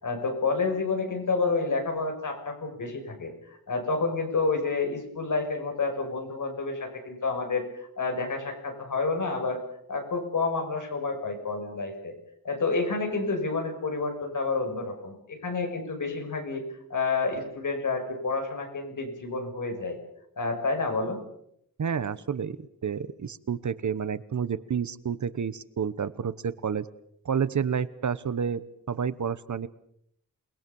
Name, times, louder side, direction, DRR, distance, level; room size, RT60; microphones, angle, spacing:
voice 1, 0.0-9.6 9.9-12.1 12.4-16.6 16.9-20.0 20.4-21.2, left 3 dB, 60° left, 4 dB, 6.3 m, -29 dB
voice 2, 21.8-26.8 27.2-28.6 28.9-29.7, right 7 dB, 55° right, 15 dB, 1.0 m, -30 dB
28.5 x 20.5 x 7.1 m, 0.74 s
wide cardioid pair, 165°, 35 cm